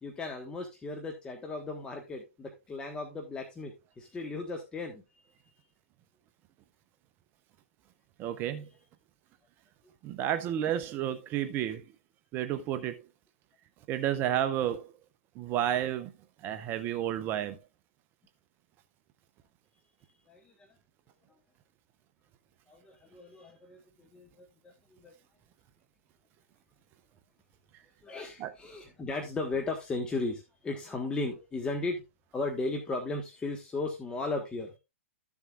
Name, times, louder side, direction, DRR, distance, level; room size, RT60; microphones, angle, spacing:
voice 1, 0.0-5.0 20.3-20.7 22.7-24.7 25.0-25.1 28.0-32.0 32.3-34.7, left 3 dB, 10° left, 1.4 m, -36 dB
voice 2, 8.2-8.7 10.0-11.9 12.3-13.0 13.9-14.9 15.4-16.1 16.4-17.6 28.4-28.5, right 11 dB, 25° right, 0.6 m, -31 dB
13.5 x 7.1 x 2.4 m
hypercardioid pair, 130°, 8 cm